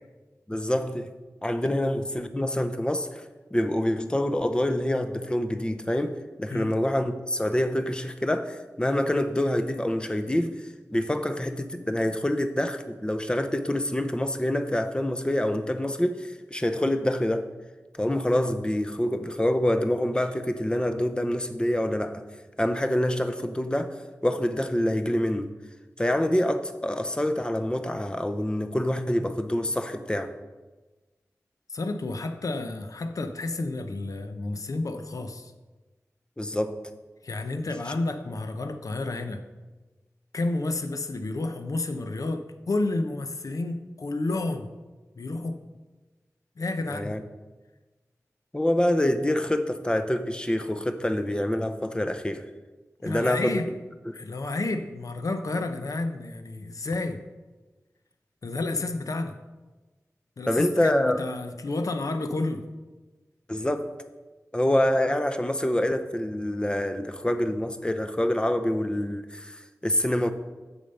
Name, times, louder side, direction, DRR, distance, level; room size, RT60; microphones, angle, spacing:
voice 1, 0.5-1.1 1.4-3.3 3.5-17.5 18.0-22.2 22.6-25.5 26.0-30.3 36.4-36.8 46.9-47.2 48.5-52.5 53.0-53.6 54.1-54.2 60.5-61.2 63.5-63.9 64.5-70.3, left 1 dB, 15° left, 8 dB, 0.7 m, -26 dB
voice 2, 31.7-35.5 37.2-39.4 40.3-44.7 45.2-45.6 46.6-47.2 53.0-53.7 54.1-57.2 58.4-59.4 60.4-62.6, left 2 dB, 75° left, 8 dB, 0.7 m, -30 dB
7.2 x 6.8 x 5.4 m, 1.2 s
wide cardioid pair, 70°, 6 cm